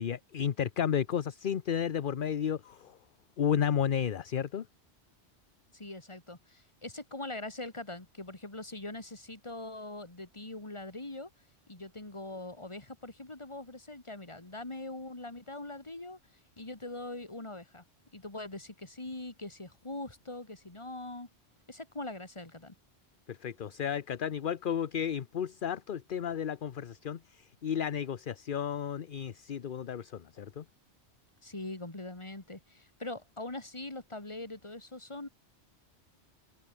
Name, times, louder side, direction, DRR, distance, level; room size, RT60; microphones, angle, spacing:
voice 1, 0.0-3.0 3.4-4.7 23.3-30.6, left 8 dB, 50° left, 0.9 m, -32 dB
voice 2, 5.7-11.3 11.7-16.2 16.6-17.8 18.1-21.3 21.7-22.7 31.4-35.3, left 2 dB, 25° left, 2.5 m, -42 dB
omnidirectional pair, 1.2 m